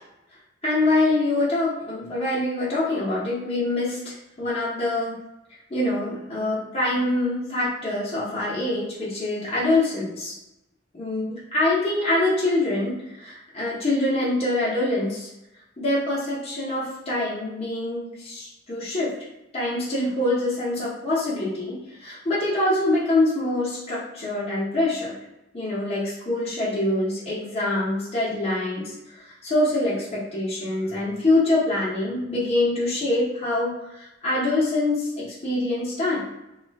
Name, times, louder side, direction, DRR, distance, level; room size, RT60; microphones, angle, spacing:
voice 1, 0.6-5.1 5.7-10.3 10.9-15.3 15.8-19.1 19.5-25.2 25.5-28.9 29.3-36.3, left 2 dB, 35° left, -9 dB, 0.8 m, -25 dB
2.4 x 2.1 x 3.3 m, 0.91 s
head